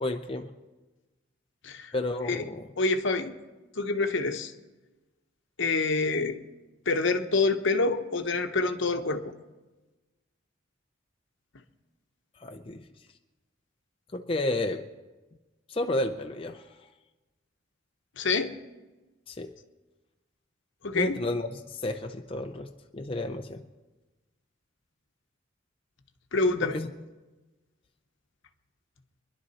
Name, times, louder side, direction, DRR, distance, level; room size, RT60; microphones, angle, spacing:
voice 1, 0.0-0.5 1.9-2.7 12.4-12.8 14.1-14.8 15.7-16.6 19.3-19.5 20.9-23.6 26.6-26.9, left 2 dB, 30° left, 5 dB, 0.6 m, -31 dB
voice 2, 2.8-3.3 3.8-4.5 5.6-6.4 6.9-9.2 18.2-18.5 20.8-21.2 26.3-26.8, left 3 dB, 65° left, 8 dB, 1.0 m, -26 dB
23.5 x 11.0 x 4.2 m, 1.2 s
head